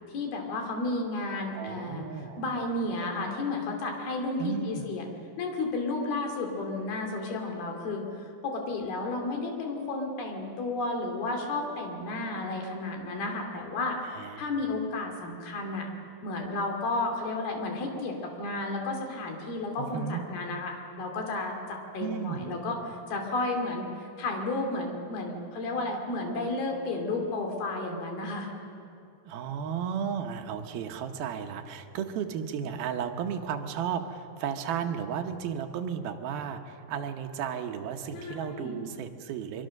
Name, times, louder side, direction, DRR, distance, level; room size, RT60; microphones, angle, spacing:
voice 1, 0.1-2.0 2.4-5.0 5.4-14.0 14.4-15.9 16.2-28.5 38.1-38.8, left 2 dB, 65° left, 3 dB, 4.5 m, -32 dB
voice 2, 1.5-2.4 4.4-4.8 14.1-14.4 19.8-20.2 22.0-22.5 29.3-39.7, right 8 dB, 70° right, 6 dB, 2.7 m, -34 dB
24.0 x 23.5 x 6.5 m, 2.6 s
omnidirectional pair, 4.8 m